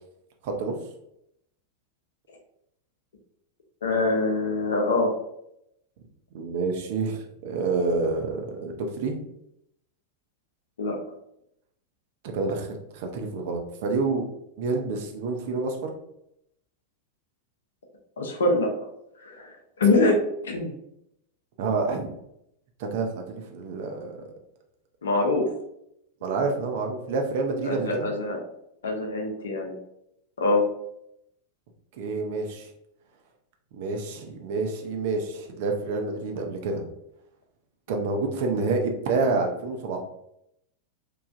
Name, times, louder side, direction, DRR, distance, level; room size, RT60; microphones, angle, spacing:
voice 1, 0.4-0.8 6.3-9.2 12.3-14.2 14.6-15.9 21.6-22.1 22.8-24.2 26.2-28.1 32.0-32.7 33.7-36.8 37.9-40.0, right 3 dB, 50° right, 3 dB, 0.5 m, -28 dB
voice 2, 3.8-5.1 10.8-11.0 18.2-18.7 19.2-19.5 19.8-20.2 20.4-20.7 25.0-25.5 27.6-28.4 28.8-29.7 30.4-30.7, left 2 dB, 65° left, 2 dB, 0.6 m, -24 dB
3.1 x 2.2 x 2.5 m, 0.78 s
figure-of-eight pair, 90°, 0 cm